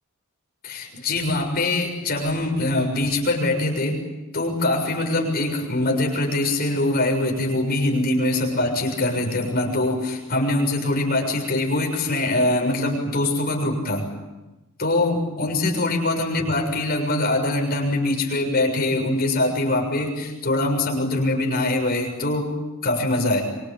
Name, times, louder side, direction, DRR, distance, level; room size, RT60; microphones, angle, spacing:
voice 1, 0.6-4.0 4.3-14.1 14.8-22.5 22.8-23.4, left 2 dB, 45° left, 2 dB, 6.7 m, -23 dB
26.0 x 25.0 x 8.7 m, 1.1 s
head